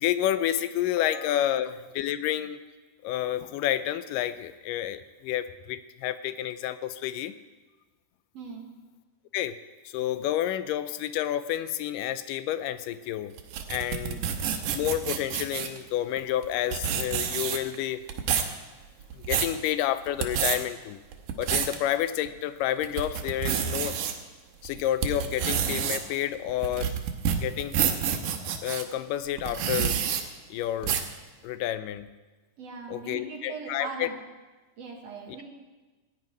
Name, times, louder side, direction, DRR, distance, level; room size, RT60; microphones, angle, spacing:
voice 1, 0.0-2.6 3.0-7.3 9.3-9.6 9.9-13.3 13.7-14.2 14.7-18.0 19.1-21.0 21.4-24.0 24.6-27.0 27.4-27.8 28.6-30.0 30.5-31.0 31.4-32.1 32.9-34.1, left 12 dB, 90° left, 13 dB, 2.3 m, -29 dB
voice 2, 8.3-8.7 14.1-14.4 32.6-34.2 34.8-35.4, right 5 dB, 55° right, 1 dB, 2.3 m, -40 dB
sound 1, 13.4-15.8 16.4-16.5 16.7-17.8 18.1-18.5 19.0-19.5 20.1-20.6 21.1-21.8 22.3-22.4 22.8-24.1 24.6-28.8 29.4-30.2 30.8-31.1, right 8 dB, 90° right, 2.6 m, -28 dB
16.5 x 5.5 x 9.2 m, 1.2 s
omnidirectional pair, 3.7 m